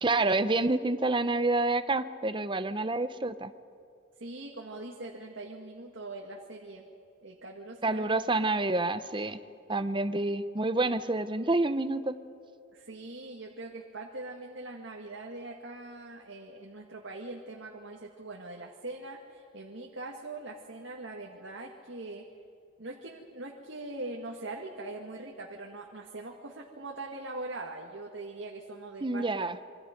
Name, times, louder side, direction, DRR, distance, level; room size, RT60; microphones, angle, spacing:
voice 1, 0.0-3.5 7.8-9.4 9.7-12.2 29.0-29.6, right 2 dB, 25° right, 12 dB, 0.8 m, -28 dB
voice 2, 4.2-6.9 7.2-8.2 12.7-22.2 22.8-29.7, right 2 dB, 75° right, 0 dB, 1.9 m, -42 dB
27.0 x 24.5 x 5.2 m, 2.4 s
head